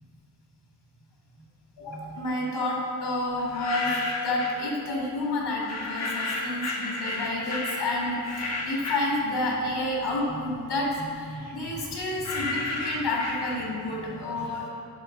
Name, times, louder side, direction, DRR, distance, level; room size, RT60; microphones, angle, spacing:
voice 1, 1.8-4.0 4.2-14.7, left 2 dB, 85° left, -3 dB, 2.2 m, -30 dB
sound 1, 3.4-4.6 5.6-9.9 10.2-14.0, left 2 dB, 40° left, 1.3 m, -33 dB
8.4 x 6.1 x 5.9 m, 2.5 s
wide cardioid pair, 170°, 40 cm